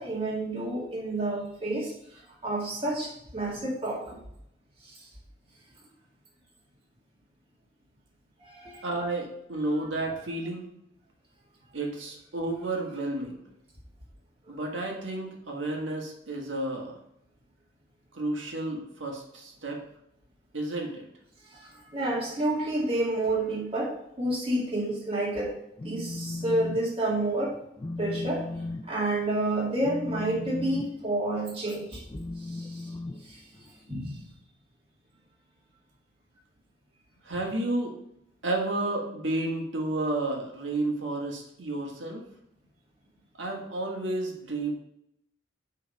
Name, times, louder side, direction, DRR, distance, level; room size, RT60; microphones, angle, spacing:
voice 1, 0.0-4.2 4.8-5.1 8.4-8.9 14.5-14.6 21.5-25.5 25.8-27.6 28.0-28.5 28.9-32.0 32.4-32.9 33.2-34.2, right 1 dB, 30° right, -5 dB, 2.2 m, -30 dB
voice 2, 8.8-10.7 11.7-13.4 14.5-17.0 18.1-19.8 20.5-21.1 37.2-38.0 38.4-42.3 43.4-44.7, right 2 dB, 80° right, 0 dB, 1.7 m, -31 dB
Telephone, 25.6-26.8 27.1-27.4 27.8-33.9, left 2 dB, 25° left, 0.4 m, -37 dB
8.2 x 3.8 x 5.2 m, 0.77 s
head